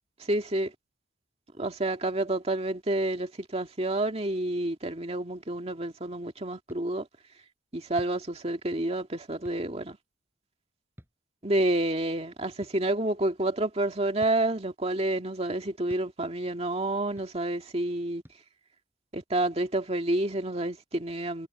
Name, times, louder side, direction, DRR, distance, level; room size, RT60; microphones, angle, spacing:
voice 1, 0.2-0.7 1.6-7.1 7.7-10.0 11.4-18.2 19.1-21.5, right 1 dB, 30° right, 2.1 m, -29 dB
sound 1, 6.7-6.8 7.9-8.2 9.4-9.6 11.0-11.1 12.6-12.7 14.2-14.4 15.9-16.1 17.2-17.3 18.2-18.4, equal, 10° right, 7.7 m, -49 dB
head